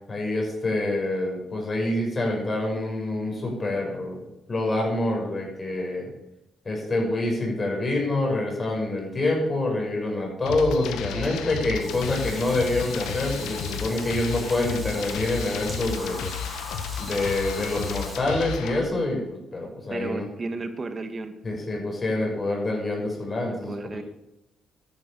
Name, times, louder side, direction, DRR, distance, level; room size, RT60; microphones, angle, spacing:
voice 1, 0.1-4.2 4.5-6.1 6.6-16.3 17.0-20.3 21.4-24.0, left 2 dB, 30° left, 0 dB, 6.8 m, -26 dB
sound 1, 10.5-18.8, left 8 dB, 90° left, 1.6 m, -33 dB
voice 2, 11.1-11.4 19.9-21.3 23.5-24.0, right 3 dB, 35° right, 8 dB, 2.1 m, -34 dB
Water, 11.8-18.2, right 1 dB, 15° right, 5.0 m, -41 dB
13.0 x 11.0 x 6.9 m, 0.89 s
cardioid pair, 90°, 0 cm